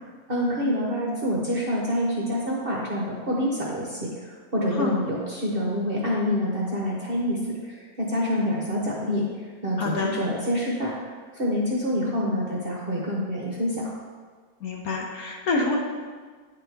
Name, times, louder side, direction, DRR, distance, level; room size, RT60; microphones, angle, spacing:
voice 1, 0.3-10.9 11.3-13.9, equal, 45° right, -3 dB, 0.8 m, -27 dB
voice 2, 9.8-10.1 14.6-15.8, left 3 dB, 60° left, 0 dB, 1.1 m, -27 dB
9.7 x 4.4 x 3.4 m, 1.5 s
omnidirectional pair, 1.9 m